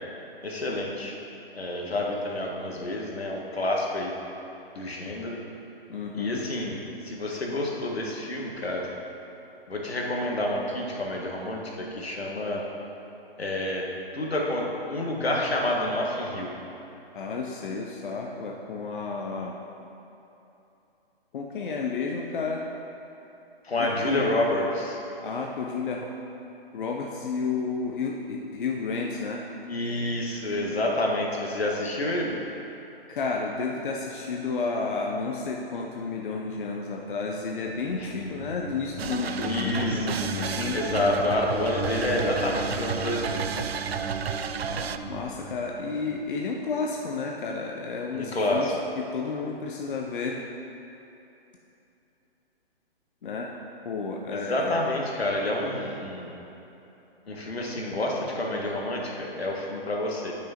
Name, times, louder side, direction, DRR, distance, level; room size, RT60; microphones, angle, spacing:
voice 1, 0.4-1.1 1.5-4.1 4.7-5.4 6.1-8.9 9.7-12.6 13.4-13.8 14.1-16.5 23.6-25.0 29.7-32.3 38.0-38.1 39.5-40.1 40.7-43.4 48.1-48.7 54.3-56.4 57.3-60.3, left 1 dB, 80° left, -1 dB, 1.6 m, -28 dB
voice 2, 5.9-6.4 17.1-19.5 21.3-22.6 23.8-24.3 25.2-26.1 26.7-29.4 33.1-40.8 44.6-50.4 53.2-53.5 53.8-54.8, left 4 dB, 55° left, 0 dB, 0.8 m, -31 dB
sound 1, 37.1-46.3, right 2 dB, 30° right, 1.0 m, -37 dB
sound 2, 39.0-45.0, right 7 dB, 80° right, 0.5 m, -33 dB
8.8 x 6.2 x 4.3 m, 3.0 s
figure-of-eight pair, 135°, 30 cm